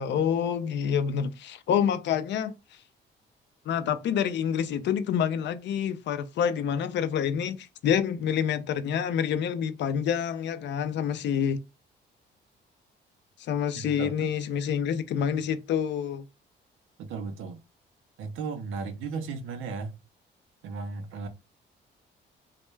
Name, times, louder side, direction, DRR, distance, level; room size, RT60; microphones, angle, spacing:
voice 1, 0.0-2.5 3.7-11.6 13.5-16.3, left 8 dB, 65° left, 0.4 m, -27 dB
voice 2, 13.8-14.3 17.0-17.6 18.2-19.9 20.6-21.3, right 4 dB, 85° right, 0.5 m, -35 dB
2.2 x 2.1 x 3.1 m
cardioid pair, 90°, 20 cm